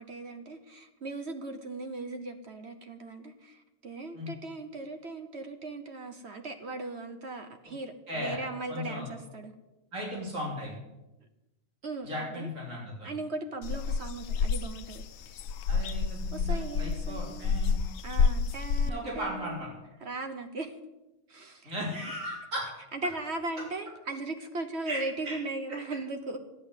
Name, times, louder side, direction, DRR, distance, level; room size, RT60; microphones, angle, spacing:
voice 1, 0.0-9.5 11.8-12.5 13.0-15.4 16.3-17.5 18.0-19.6 20.0-20.8 21.3-21.7 22.9-26.4, right 2 dB, 55° right, 7 dB, 1.3 m, -38 dB
voice 2, 8.1-8.4 8.7-9.1 9.9-10.7 12.0-13.1 15.7-17.8 18.8-19.7 21.6-22.6 24.9-25.0 25.2-25.4, equal, 85° right, -3 dB, 3.8 m, -36 dB
sound 1, 13.6-18.9, left 5 dB, 90° left, 1.0 m, -29 dB
12.0 x 8.8 x 8.2 m, 0.99 s
omnidirectional pair, 1.3 m